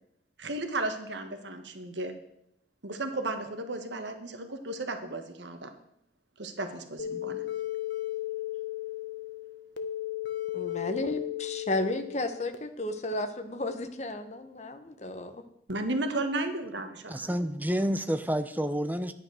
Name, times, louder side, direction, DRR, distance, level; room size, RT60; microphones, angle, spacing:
voice 1, 0.4-2.1 2.8-5.7 6.4-7.4 15.7-17.3, right 2 dB, 75° right, 1.5 m, -34 dB
sound 1, 7.0-12.6, left 13 dB, 75° left, 1.1 m, -35 dB
voice 2, 10.5-15.5, left 2 dB, 35° left, 1.1 m, -33 dB
voice 3, 17.1-19.1, equal, 10° right, 0.6 m, -29 dB
11.0 x 9.9 x 6.4 m
head